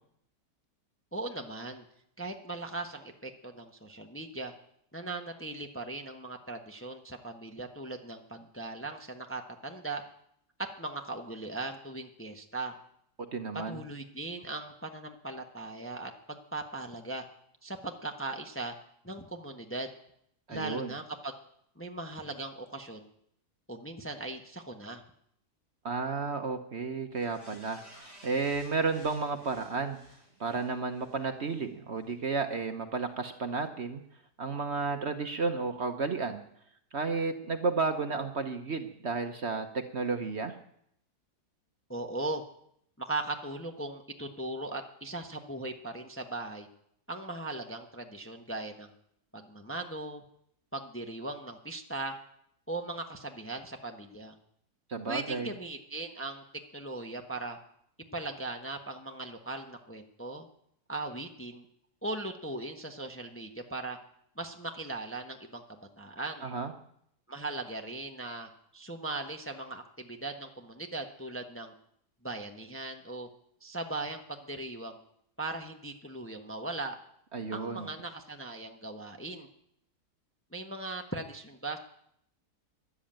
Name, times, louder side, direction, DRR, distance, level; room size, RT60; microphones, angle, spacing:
voice 1, 1.1-1.8 2.2-4.5 4.9-10.0 10.8-12.7 13.7-17.2 17.6-18.7 19.0-19.9 20.5-21.3 21.8-23.1 23.7-25.0 41.9-42.4 43.0-46.7 47.1-48.9 49.3-50.2 50.7-52.2 52.7-54.3 55.1-56.4 56.7-57.6 58.1-60.5 60.9-61.6 62.0-64.0 64.4-65.6 66.0-66.5 67.3-71.7 72.2-73.3 73.6-75.0 75.4-77.0 77.5-79.5 80.5-81.8, right 2 dB, 10° left, 4 dB, 1.0 m, -39 dB
voice 2, 13.3-13.8 20.5-20.9 25.8-30.0 30.4-34.0 34.4-36.4 36.9-40.6 54.9-55.5 66.4-66.7 77.3-77.9, right 4 dB, 45° right, 6 dB, 1.2 m, -32 dB
sound 1, 27.1-31.7 32.0-32.1, equal, 45° left, 5.6 m, -56 dB
13.5 x 11.5 x 8.9 m, 0.72 s
omnidirectional pair, 1.7 m